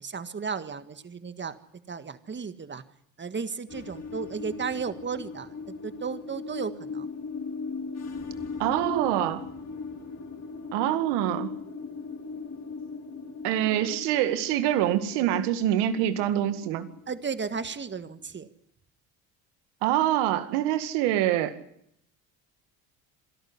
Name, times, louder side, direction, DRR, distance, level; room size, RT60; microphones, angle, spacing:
voice 1, 0.0-1.6 1.9-2.8 3.2-5.5 5.8-7.1 17.1-18.5, right 5 dB, 25° right, 11 dB, 1.7 m, -34 dB
sound 1, 3.7-18.4, left 4 dB, 40° left, 4.0 m, -39 dB
voice 2, 8.6-9.5 10.7-11.5 13.4-16.9 19.8-21.5, right 12 dB, 80° right, 10 dB, 2.1 m, -25 dB
26.5 x 12.0 x 9.8 m, 0.74 s
supercardioid pair, 80°, 41 cm